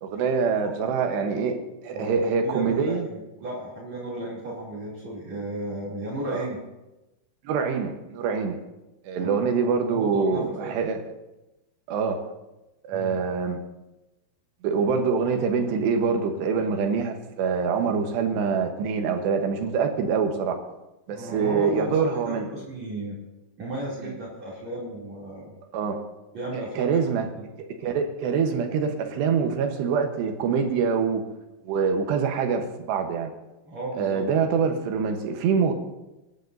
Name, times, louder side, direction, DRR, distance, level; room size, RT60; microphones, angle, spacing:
voice 1, 0.0-3.1 6.3-6.5 7.4-8.6 9.0-11.0 11.9-12.2 12.8-13.6 14.6-20.6 21.1-22.5 25.7-26.0 26.8-27.3 27.6-31.2 31.6-33.3 34.0-35.7, right 5 dB, 80° right, 5 dB, 3.2 m, -25 dB
voice 2, 2.4-6.6 9.2-9.3 9.7-10.7 12.9-13.2 21.1-23.2 23.6-25.5 26.3-27.0 27.4-27.5 33.7-34.2, right 1 dB, 40° right, -4 dB, 3.8 m, -34 dB
25.5 x 11.0 x 2.7 m, 1.0 s
omnidirectional pair, 5.0 m